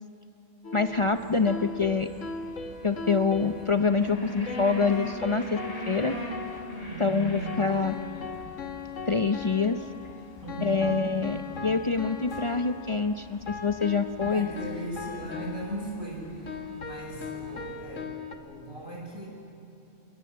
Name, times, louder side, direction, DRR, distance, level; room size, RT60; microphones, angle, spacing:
sound 1, 0.6-18.4, left 4 dB, 85° left, 1.7 m, -39 dB
voice 1, 0.7-2.1 2.8-5.6 5.9-6.2 7.0-7.9 9.1-9.8 10.6-14.5, left 4 dB, 35° left, 8 dB, 0.6 m, -26 dB
sound 2, 0.9-18.0, equal, 50° left, 4.3 m, -43 dB
voice 2, 6.9-7.7 10.4-11.1 14.2-18.2 18.4-19.3, right 1 dB, 25° right, -5 dB, 7.2 m, -38 dB
27.5 x 21.0 x 7.3 m, 2.8 s
omnidirectional pair, 1.3 m